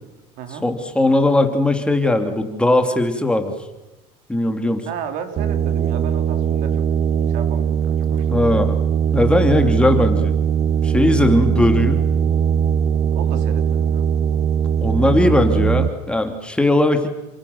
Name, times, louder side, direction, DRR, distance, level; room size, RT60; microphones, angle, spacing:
voice 1, 0.6-3.5 4.3-4.9 8.3-8.8 9.1-10.3 10.8-12.0 14.8-17.1, left 2 dB, 5° left, 6 dB, 2.8 m, -18 dB
voice 2, 4.9-6.8 7.3-8.5 9.5-9.7 13.1-14.1, right 7 dB, 70° right, 7 dB, 3.7 m, -34 dB
sound 1, 5.4-15.9, right 8 dB, 45° right, 1.0 m, -20 dB
29.0 x 25.0 x 7.1 m, 1.0 s
cardioid pair, 125°, 14 cm